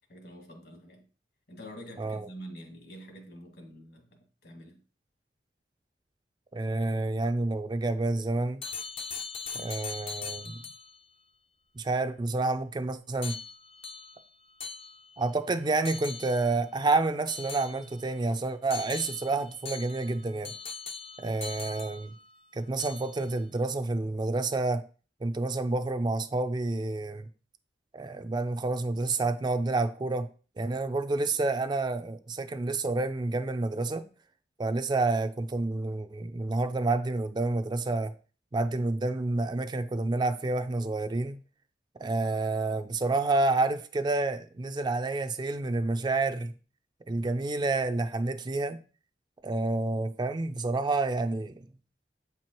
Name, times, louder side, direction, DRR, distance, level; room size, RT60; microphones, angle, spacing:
voice 1, 0.1-1.1 1.5-4.8, equal, 65° left, 1.8 m, -47 dB
voice 2, 2.0-2.3 6.5-8.6 9.5-10.5 11.8-13.3 15.2-20.5 21.2-22.1 22.5-24.8 25.2-27.2 27.9-30.3 30.6-34.0 34.6-38.1 38.5-41.4 42.0-46.5 47.1-48.8 49.4-51.6, right 2 dB, 25° right, 0.4 m, -29 dB
sound 1, 8.6-11.0 13.2-15.3 15.8-16.6 17.3-18.2 18.7-22.4 22.8-23.3, left 5 dB, 35° left, 0.5 m, -41 dB
8.0 x 4.5 x 3.0 m
head